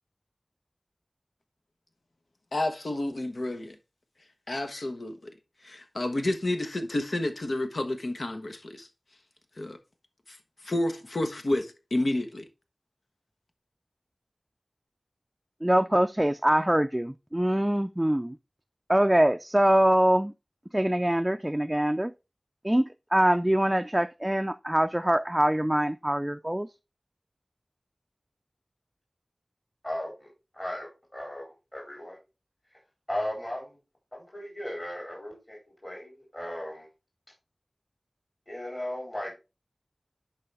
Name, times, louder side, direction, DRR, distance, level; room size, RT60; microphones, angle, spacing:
voice 1, 2.5-3.8 4.5-5.3 5.6-8.9 9.6-9.8 10.3-10.4 10.6-12.5, left 1 dB, 85° left, 1.1 m, -30 dB
voice 2, 15.6-18.3 18.9-20.3 20.7-22.1 22.6-26.7, right 1 dB, 15° right, 0.4 m, -24 dB
voice 3, 29.8-32.2 33.1-33.8 34.1-36.9 38.5-39.4, left 1 dB, 30° left, 4.1 m, -36 dB
11.0 x 4.7 x 3.4 m
wide cardioid pair, 55°, 0 cm